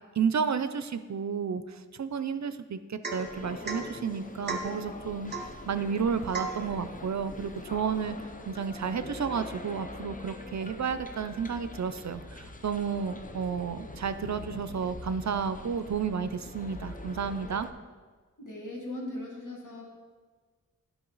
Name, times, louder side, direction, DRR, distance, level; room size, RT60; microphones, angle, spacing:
voice 1, 0.2-5.3 5.7-17.7, right 6 dB, 60° right, 11 dB, 0.5 m, -32 dB
Domestic sounds home sounds / Chink clink / Drip, 3.0-3.3 3.6-3.9 4.5-4.8 5.3-5.6 6.3-6.6, right 3 dB, 30° right, 1.0 m, -35 dB
sound 1, 3.1-17.7, left 2 dB, 25° left, 0.6 m, -43 dB
voice 2, 18.4-19.9, left 1 dB, 70° left, -1 dB, 1.8 m, -39 dB
11.0 x 5.1 x 3.9 m, 1.4 s
wide cardioid pair, 55°, 32 cm